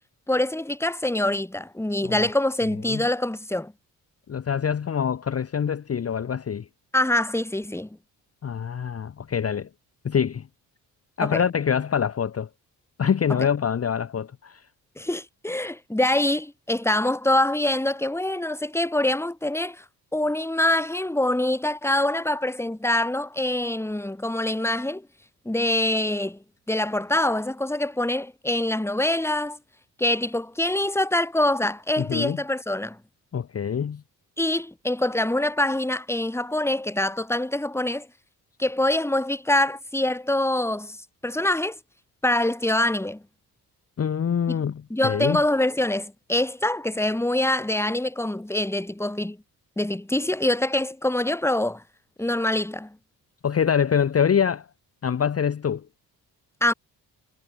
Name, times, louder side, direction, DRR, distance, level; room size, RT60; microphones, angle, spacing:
voice 1, 0.3-3.7 6.9-7.9 11.2-11.4 15.0-19.8 20.1-25.0 25.4-26.4 26.7-29.6 30.0-33.0 34.4-38.1 38.6-41.0 41.2-41.8 42.2-43.2 44.5-44.6 44.9-49.4 49.8-51.8 52.2-53.0 56.6-56.7, left 1 dB, 5° left, 1.7 m, -24 dB
voice 2, 4.3-6.7 8.4-9.7 10.0-10.5 11.2-12.5 13.0-14.6 32.0-32.4 33.3-34.0 44.0-45.4 53.4-54.7 55.0-55.9, left 7 dB, 35° left, 0.9 m, -25 dB
supercardioid pair, 50°, 41 cm